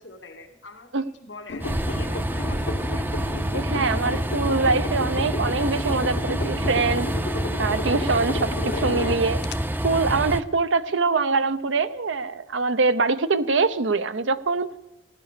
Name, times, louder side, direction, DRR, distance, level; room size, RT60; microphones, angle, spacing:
voice 1, 0.0-3.1, left 3 dB, 80° left, 7 dB, 2.1 m, -44 dB
sound 1, 1.5-9.6, left 3 dB, 65° left, 0.8 m, -33 dB
Train, 1.6-10.4, right 1 dB, 10° right, 0.5 m, -27 dB
voice 2, 3.5-7.1 7.6-9.4 9.8-14.7, right 4 dB, 85° right, 13 dB, 0.7 m, -23 dB
15.5 x 10.5 x 6.7 m, 0.91 s
head